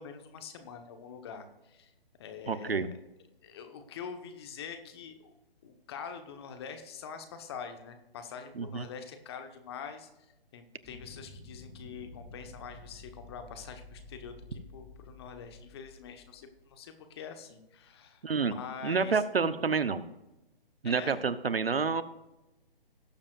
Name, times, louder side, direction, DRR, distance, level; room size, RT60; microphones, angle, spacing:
voice 1, 0.0-1.9 2.2-2.9 3.4-5.3 5.6-10.3 10.5-19.2 20.8-21.2, left 6 dB, 25° left, 7 dB, 1.2 m, -45 dB
voice 2, 2.5-2.9 8.5-8.9 18.2-18.5 18.8-20.0 20.8-22.0, right 5 dB, 80° right, 14 dB, 1.0 m, -28 dB
sound 1, 10.8-16.6, left 2 dB, ahead, 2.2 m, -51 dB
18.5 x 7.3 x 2.5 m, 0.97 s
figure-of-eight pair, 150°, 29 cm